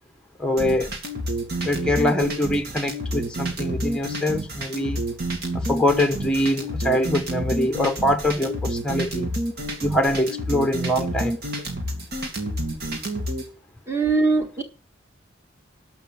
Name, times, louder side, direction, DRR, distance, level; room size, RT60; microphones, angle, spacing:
voice 1, 0.4-0.9 1.6-5.0 5.5-9.3 9.8-11.3, left 1 dB, 5° left, 1.0 m, -23 dB
sound 1, 0.6-13.5, right 1 dB, 55° right, 2.4 m, -29 dB
voice 2, 13.9-14.6, right 3 dB, 15° right, 1.8 m, -21 dB
12.0 x 5.9 x 7.2 m
head